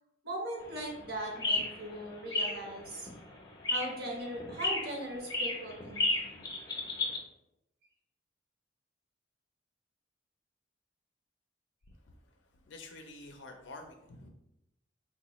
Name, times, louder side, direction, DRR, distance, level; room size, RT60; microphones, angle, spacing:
voice 1, 0.2-3.1 3.7-6.3, right 1 dB, 55° right, -1 dB, 0.9 m, -39 dB
sound 1, 0.6-7.2, left 2 dB, 20° left, 0.5 m, -34 dB
voice 2, 12.7-14.3, left 2 dB, 75° left, 4 dB, 0.4 m, -48 dB
3.8 x 2.2 x 2.9 m, 0.85 s
head